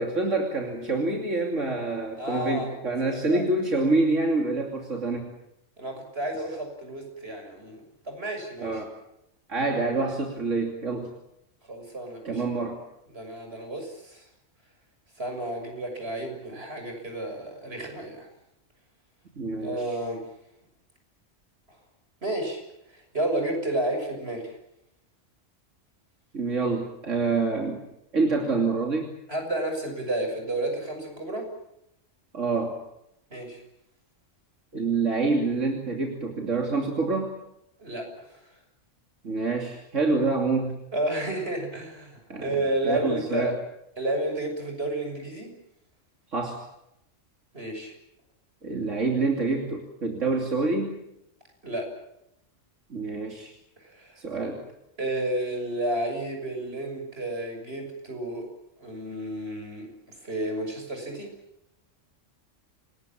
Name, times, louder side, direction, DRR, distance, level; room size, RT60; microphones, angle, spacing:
voice 1, 0.0-5.3 8.6-8.9 9.5-11.1 12.2-12.8 19.4-20.0 26.3-27.8 28.1-29.1 32.3-32.8 34.7-37.4 39.2-40.7 42.3-43.5 46.3-46.6 48.6-51.0 52.9-53.5 54.2-54.6, right 3 dB, 85° right, 2 dB, 3.2 m, -27 dB
voice 2, 2.2-2.7 3.3-3.4 5.8-8.8 11.7-12.4 13.1-14.2 15.2-18.3 19.6-20.2 22.2-22.6 22.9-24.4 29.3-31.5 33.3-33.6 37.8-38.4 40.9-43.6 44.0-45.5 47.5-47.9 51.6-51.9 53.8-54.2 55.0-58.5 58.8-59.9 60.2-61.3, right 1 dB, 55° right, 4 dB, 7.0 m, -31 dB
28.0 x 20.0 x 7.5 m, 0.81 s
omnidirectional pair, 1.3 m